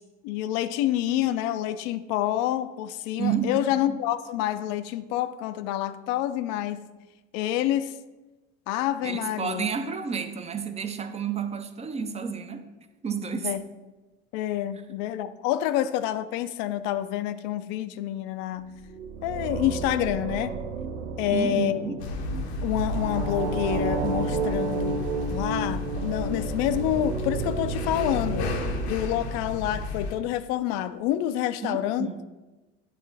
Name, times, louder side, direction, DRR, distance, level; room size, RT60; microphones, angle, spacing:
voice 1, 0.2-6.8 7.3-8.0 8.7-9.7 13.4-13.6 14.3-18.7 19.2-20.5 21.2-21.8 22.6-28.6 28.9-32.2, left 12 dB, 50° left, 13 dB, 0.5 m, -28 dB
voice 2, 3.2-3.6 3.9-4.0 9.0-12.7 13.0-13.5 21.3-22.0 31.6-32.2, right 7 dB, 20° right, 8 dB, 0.5 m, -30 dB
sound 1, 18.6-29.9, right 4 dB, 70° right, 0.7 m, -32 dB
sound 2, 22.0-30.1, left 2 dB, 75° left, 0.8 m, -32 dB
9.1 x 3.7 x 3.3 m, 1.1 s
hypercardioid pair, 75°, 33 cm